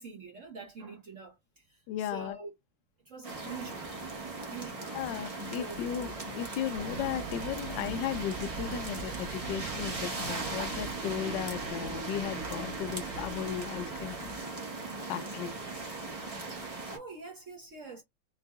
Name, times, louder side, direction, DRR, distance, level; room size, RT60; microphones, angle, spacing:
voice 1, 0.0-1.8 2.1-2.5 3.0-4.0 4.5-5.0 5.6-5.8 16.9-18.0, right 4 dB, 50° right, 1.2 m, -45 dB
voice 2, 1.9-2.4 4.9-14.2 15.0-15.6, left 11 dB, 75° left, 1.2 m, -36 dB
sound 1, 3.2-17.0, right 3 dB, 20° right, 1.2 m, -39 dB
sound 2, 4.9-14.4, left 3 dB, 55° left, 0.8 m, -49 dB
sound 3, 6.7-13.9, right 6 dB, 75° right, 0.7 m, -43 dB
4.8 x 2.7 x 2.3 m
omnidirectional pair, 2.0 m